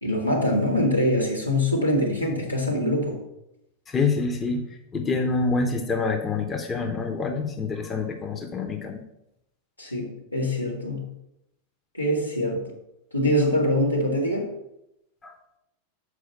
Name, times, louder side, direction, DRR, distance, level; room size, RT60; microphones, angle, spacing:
voice 1, 0.0-3.2 9.8-11.1 11.9-12.6 13.1-14.5, left 1 dB, 90° left, -3 dB, 1.9 m, -24 dB
voice 2, 3.9-4.7 4.9-9.0 15.2-15.3, left 4 dB, 20° left, 4 dB, 0.8 m, -26 dB
6.3 x 4.8 x 5.6 m, 0.82 s
figure-of-eight pair, 90°, 0 cm